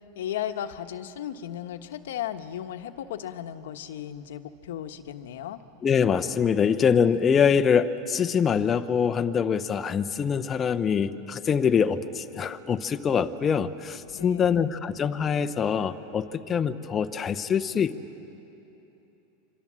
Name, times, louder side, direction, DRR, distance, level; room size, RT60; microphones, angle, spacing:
voice 1, 0.1-5.6 14.1-14.6, left 10 dB, 85° left, 9 dB, 1.2 m, -35 dB
voice 2, 5.8-17.9, left 7 dB, 25° left, 9 dB, 0.9 m, -24 dB
26.5 x 25.0 x 7.5 m, 3.0 s
supercardioid pair, 130°, 0 cm